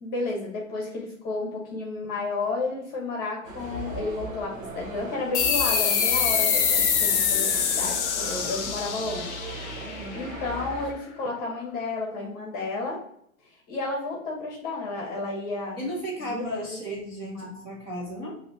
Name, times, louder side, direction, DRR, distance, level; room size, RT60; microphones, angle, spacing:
voice 1, 0.0-9.4 9.7-13.0 13.7-15.8 16.2-17.0 17.3-17.6, left 3 dB, 20° left, -2 dB, 1.1 m, -32 dB
sound 1, 3.4-10.9, right 2 dB, 65° right, 1.0 m, -38 dB
sound 2, 5.3-10.5, left 7 dB, 55° left, 0.8 m, -25 dB
voice 2, 9.8-10.3 15.8-18.4, equal, 15° right, -6 dB, 0.8 m, -34 dB
5.8 x 3.0 x 2.7 m, 0.69 s
hypercardioid pair, 150°, 43 cm